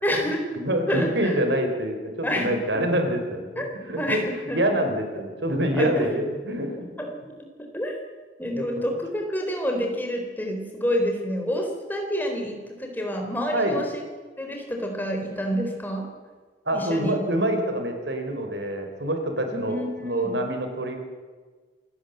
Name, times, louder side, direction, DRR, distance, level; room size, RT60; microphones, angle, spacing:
voice 1, 0.0-0.4 0.9-1.4 2.2-2.8 3.6-3.7 4.0-4.2 4.5-4.6 5.7-6.2 7.0-7.1 7.4-7.5 7.7-8.0 8.4-14.0 14.4-16.0 16.7-17.1 19.5-20.4, equal, 10° left, 2 dB, 4.0 m, -28 dB
voice 2, 0.6-4.2 4.5-7.0 8.6-8.8 13.5-13.8 16.7-21.0, right 1 dB, 75° right, 5 dB, 4.1 m, -26 dB
27.0 x 16.0 x 8.1 m, 1.4 s
head